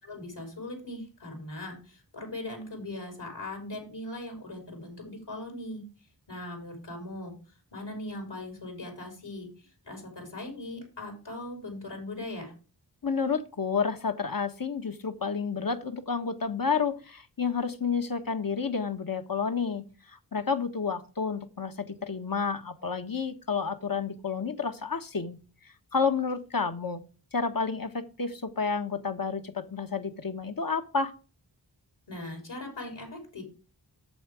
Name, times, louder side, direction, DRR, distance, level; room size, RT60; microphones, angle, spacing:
voice 1, 0.0-5.8 6.3-7.3 7.7-9.5 9.8-12.5 32.1-33.4, left 1 dB, 70° left, 1 dB, 4.8 m, -39 dB
voice 2, 13.0-25.4 25.6-27.0 27.3-31.1, left 5 dB, 50° left, 8 dB, 1.5 m, -30 dB
8.6 x 7.3 x 5.0 m, 0.35 s
wide cardioid pair, 45°, 43 cm